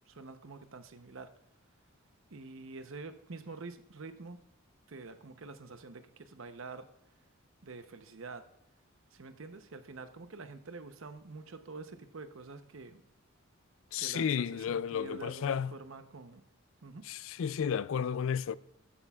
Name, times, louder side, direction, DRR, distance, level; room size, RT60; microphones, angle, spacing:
voice 1, 0.1-1.3 2.3-4.4 4.9-6.9 7.6-8.5 9.1-13.0 14.0-16.4 16.8-17.1, right 3 dB, 65° right, 0.8 m, -47 dB
voice 2, 13.9-15.7 17.1-18.6, left 7 dB, 65° left, 0.3 m, -32 dB
13.0 x 9.9 x 2.4 m
head